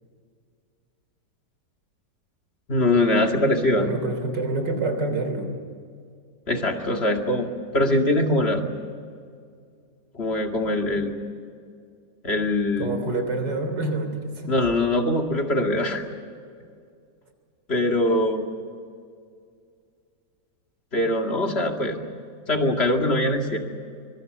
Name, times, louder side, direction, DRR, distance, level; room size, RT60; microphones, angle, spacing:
voice 1, 2.7-3.9 6.5-8.6 10.1-11.1 12.2-13.0 14.5-16.0 17.7-18.5 20.9-22.0 22.5-23.6, left 1 dB, 35° left, 3 dB, 2.5 m, -22 dB
voice 2, 3.8-5.5 12.8-14.5, right 2 dB, 85° right, 6 dB, 4.0 m, -27 dB
24.5 x 23.0 x 6.7 m, 2.2 s
omnidirectional pair, 1.9 m